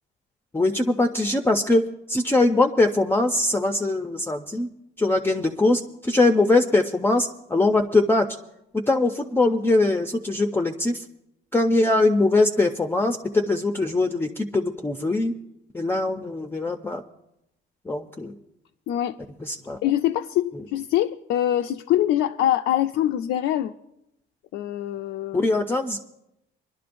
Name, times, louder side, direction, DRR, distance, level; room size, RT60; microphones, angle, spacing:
voice 1, 0.5-1.8 2.1-4.7 5.0-8.3 8.9-11.0 11.5-15.3 15.7-17.0 17.9-18.3 19.4-19.8 20.5-20.6 25.3-26.0, left 2 dB, 10° left, 0.5 m, -22 dB
voice 2, 18.9-19.2 19.8-23.7 24.5-25.5, left 12 dB, 70° left, 0.4 m, -24 dB
26.5 x 11.5 x 2.6 m
cardioid pair, 140°, 21 cm